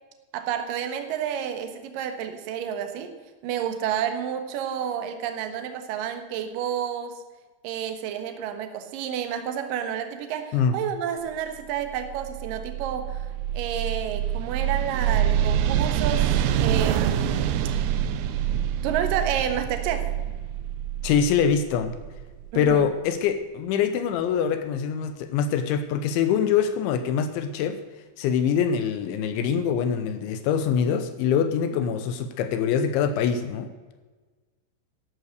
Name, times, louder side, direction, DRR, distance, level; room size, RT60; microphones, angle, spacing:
voice 1, 0.3-3.1 3.4-7.2 7.6-13.3 13.5-17.7 18.8-20.1 22.5-22.9, right 9 dB, 70° right, 7 dB, 2.2 m, -30 dB
sound 1, 11.9-22.7, right 10 dB, 90° right, 3.4 m, -26 dB
voice 2, 21.0-21.9 22.5-27.8 28.2-33.7, left 7 dB, 80° left, 10 dB, 3.0 m, -24 dB
14.0 x 11.5 x 6.7 m, 1.3 s
omnidirectional pair, 5.7 m